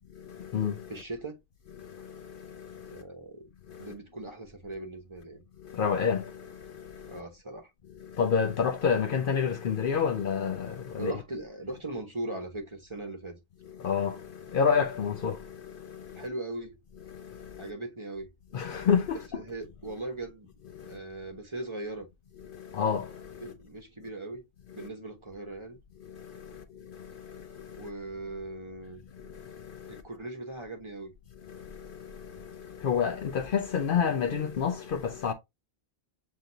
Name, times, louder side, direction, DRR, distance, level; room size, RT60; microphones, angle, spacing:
voice 1, 0.2-0.9 1.8-3.0 3.7-3.9 5.6-7.2 8.0-11.1 13.7-16.2 17.1-17.7 18.5-19.4 20.7-21.0 22.5-23.5 24.8-24.9 26.0-27.9 29.1-30.0 31.4-35.3, left 6 dB, 60° left, 0.7 m, -30 dB
voice 2, 0.9-1.4 2.9-3.5 3.8-5.4 7.1-7.7 11.0-13.4 16.1-16.8 17.6-18.3 19.3-20.5 20.8-22.1 23.4-24.4 24.7-25.8 27.8-29.0 29.9-31.1, right 2 dB, 30° right, 0.9 m, -39 dB
7.5 x 2.6 x 2.6 m
omnidirectional pair, 1.1 m